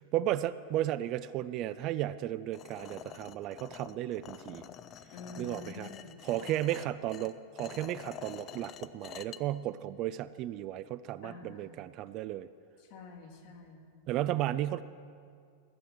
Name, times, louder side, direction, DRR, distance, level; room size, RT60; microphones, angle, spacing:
voice 1, 0.0-4.6 5.4-5.9 6.2-12.5 14.1-14.8, right 13 dB, 40° right, 15 dB, 0.3 m, -34 dB
sound 1, 2.5-9.4, left 10 dB, 35° left, 0.5 m, -48 dB
voice 2, 5.1-6.9 11.2-11.7 12.8-13.9, left 4 dB, 50° left, 3 dB, 1.8 m, -48 dB
14.5 x 7.1 x 7.6 m, 2.2 s
figure-of-eight pair, 90°, 0 cm